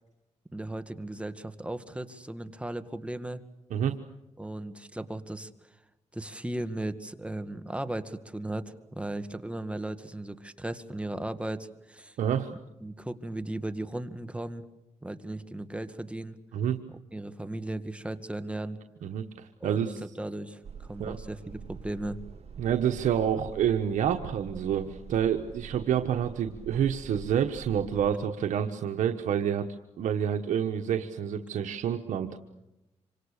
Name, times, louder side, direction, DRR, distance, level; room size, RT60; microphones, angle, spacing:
voice 1, 0.5-3.5 4.4-5.5 6.1-12.2 12.8-14.6 15.0-16.4 16.9-18.8 19.6-22.2, right 1 dB, 10° right, 10 dB, 1.9 m, -36 dB
voice 2, 12.2-12.5 16.5-16.8 19.0-20.0 21.0-21.2 22.6-29.7 30.0-32.4, right 9 dB, 90° right, 5 dB, 1.3 m, -28 dB
sound 1, 20.6-28.2, right 7 dB, 55° right, 2.1 m, -45 dB
27.0 x 25.5 x 6.7 m, 0.93 s
cardioid pair, 75°, 12 cm